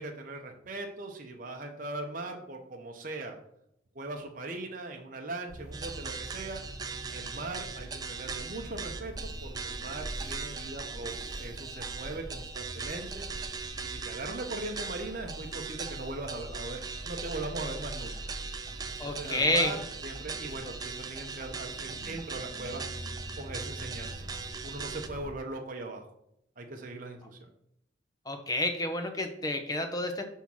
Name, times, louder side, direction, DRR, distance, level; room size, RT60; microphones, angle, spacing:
voice 1, 0.0-3.4 3.9-6.6 7.1-9.1 9.4-13.3 13.8-18.2 19.0-22.8 23.4-24.2 24.6-26.1 26.6-27.5, right 2 dB, 45° right, 2 dB, 0.8 m, -40 dB
sound 1, 5.5-25.3, equal, 35° left, 2.2 m, -44 dB
sound 2, 5.7-25.1, right 5 dB, 20° right, 0.3 m, -40 dB
voice 2, 19.0-19.7 28.3-30.2, left 2 dB, 20° left, 6 dB, 0.7 m, -29 dB
5.8 x 3.6 x 6.0 m, 0.76 s
head